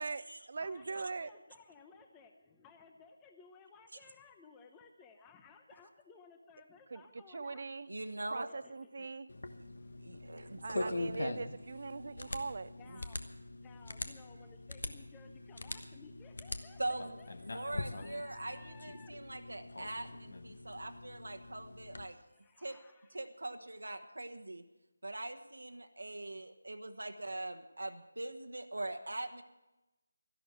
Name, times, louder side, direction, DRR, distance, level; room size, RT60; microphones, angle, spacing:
voice 1, 0.0-1.3 6.9-7.0 7.3-7.9 8.3-9.3 10.2-12.7, right 4 dB, 50° right, 15 dB, 0.6 m, -41 dB
voice 2, 0.6-7.6 8.5-9.1 9.8-9.9 12.8-13.2 13.6-19.1 22.2-23.2 23.9-24.1, left 5 dB, 10° left, 5 dB, 0.7 m, -59 dB
voice 3, 7.9-8.5 10.0-10.9 12.9-13.0 16.8-17.2 17.4-22.2 22.6-22.8 23.1-24.6 25.0-29.4, right 2 dB, 75° right, 7 dB, 1.3 m, -42 dB
sound 1, 9.3-22.0, left 2 dB, 60° left, 1.1 m, -43 dB
13.0 x 11.5 x 7.6 m, 1.0 s
figure-of-eight pair, 160°, 0 cm